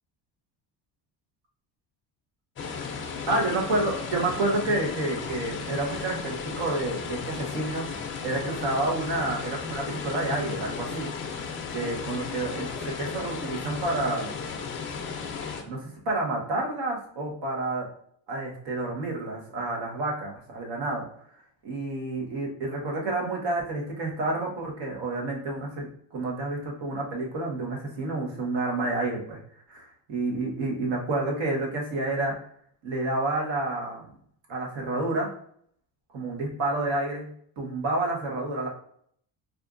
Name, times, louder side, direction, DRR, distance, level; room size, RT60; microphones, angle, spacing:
sound 1, 2.6-15.6, left 5 dB, 30° left, 0.4 m, -35 dB
voice 1, 3.3-7.9 8.2-11.1 11.7-14.3 15.7-17.9 18.3-21.1 21.6-29.4 29.7-32.3 32.8-34.1 34.5-35.3 36.1-37.3 37.6-38.7, right 2 dB, 75° right, -1 dB, 1.3 m, -29 dB
4.3 x 2.5 x 2.5 m, 0.63 s
cardioid pair, 150°, 43 cm